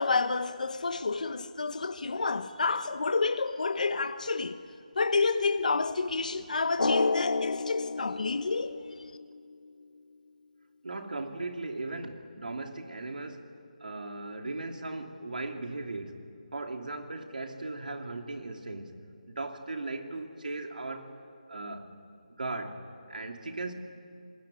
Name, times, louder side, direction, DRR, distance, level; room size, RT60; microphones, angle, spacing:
voice 1, 0.0-4.5 5.0-8.8, left 4 dB, 60° left, 1.1 m, -29 dB
Drum, 6.8-9.4, left 3 dB, 85° left, 0.6 m, -30 dB
voice 2, 10.8-13.4 13.8-16.1 16.5-18.9 19.3-21.1 21.5-21.9 22.4-23.7, right 2 dB, 75° right, 2.9 m, -37 dB
28.0 x 20.5 x 10.0 m
figure-of-eight pair, 170°, 5 cm